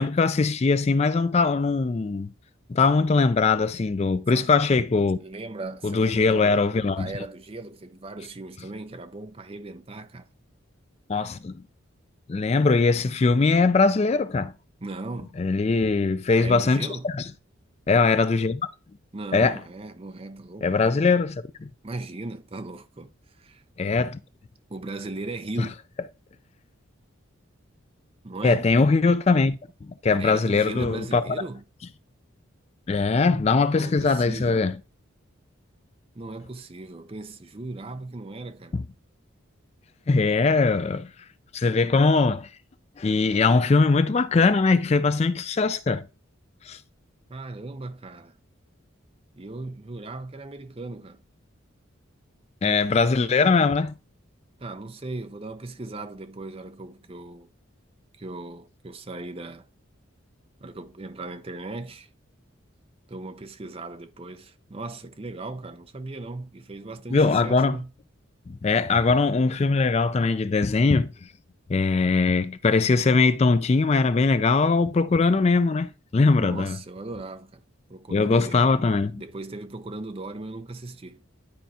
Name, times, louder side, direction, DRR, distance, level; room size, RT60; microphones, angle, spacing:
voice 1, 0.0-2.3 2.7-5.2 5.8-7.1 11.1-11.5 12.3-14.5 15.4-17.2 17.9-18.6 19.3-19.6 20.6-21.4 23.8-24.2 28.4-29.6 29.9-31.2 32.9-34.8 38.7-38.8 40.1-41.1 41.5-42.5 43.0-46.0 46.6-46.8 52.6-53.9 67.1-67.8 68.5-71.1 71.7-76.8 78.1-79.2, left 4 dB, 30° left, 0.3 m, -21 dB
voice 2, 4.9-10.3 14.8-15.4 16.4-17.1 19.1-20.7 21.8-23.1 23.4-23.6 24.7-25.8 28.2-28.7 30.1-31.6 33.8-34.7 36.1-38.8 47.3-48.4 49.4-51.2 54.6-57.5 58.2-59.7 60.6-62.1 63.1-67.9 76.4-77.6 77.9-78.7 79.2-81.2, right 2 dB, 30° right, 0.6 m, -37 dB
11.5 x 4.5 x 2.8 m
head